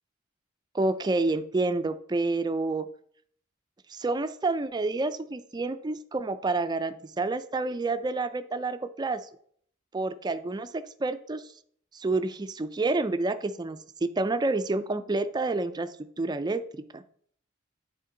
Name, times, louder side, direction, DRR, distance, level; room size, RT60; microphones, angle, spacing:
voice 1, 0.7-2.9 3.9-9.2 9.9-11.4 11.9-15.9 16.2-17.0, right 3 dB, 20° right, 11 dB, 0.4 m, -29 dB
9.4 x 4.3 x 3.8 m, 0.62 s
head